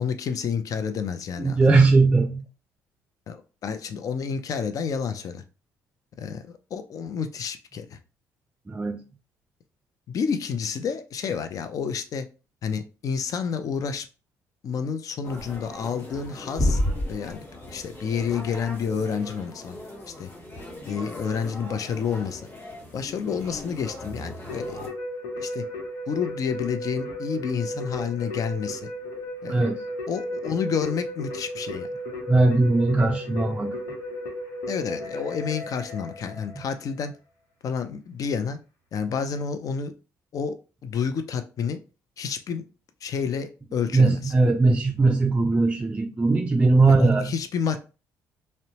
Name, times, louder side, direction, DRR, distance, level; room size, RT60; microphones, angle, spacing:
voice 1, 0.0-1.8 3.3-5.4 6.2-8.0 10.1-12.3 12.6-14.1 14.6-16.8 17.1-19.8 20.2-20.3 20.8-22.4 22.9-24.8 25.4-25.6 26.1-28.9 29.4-29.6 30.1-31.9 34.7-37.1 37.6-38.6 38.9-39.9 40.3-40.5 40.8-41.8 42.2-42.6 43.0-44.3 46.8-47.8, left 6 dB, 50° left, 0.4 m, -29 dB
voice 2, 1.4-2.4 8.7-9.0 29.5-29.8 32.3-33.8 43.9-47.3, right 3 dB, 15° right, 0.3 m, -19 dB
sound 1, 15.2-24.9, left 1 dB, 35° left, 1.4 m, -34 dB
Keyboard (musical), 24.5-36.9, left 1 dB, 85° left, 0.7 m, -35 dB
2.7 x 2.1 x 2.8 m
supercardioid pair, 70°, 7 cm